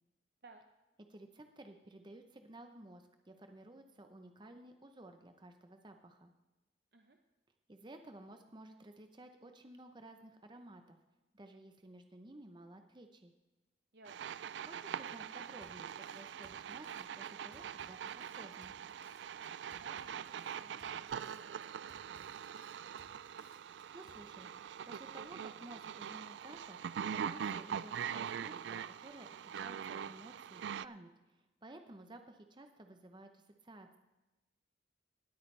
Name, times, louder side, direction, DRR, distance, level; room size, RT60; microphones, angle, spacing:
voice 1, 1.1-6.3 7.7-11.0 11.3-13.3 14.6-18.7 23.7-24.5 24.8-29.3 29.5-34.0, right 1 dB, 25° right, 6 dB, 0.7 m, -54 dB
voice 2, 13.9-14.2 19.7-21.9, right 3 dB, 60° right, 4 dB, 0.8 m, -59 dB
sound 1, 14.1-30.9, right 8 dB, 75° right, 0.3 m, -43 dB
Drum kit, 15.6-24.3, left 2 dB, 90° left, 1.7 m, -66 dB
19.0 x 8.6 x 3.3 m, 1.1 s
head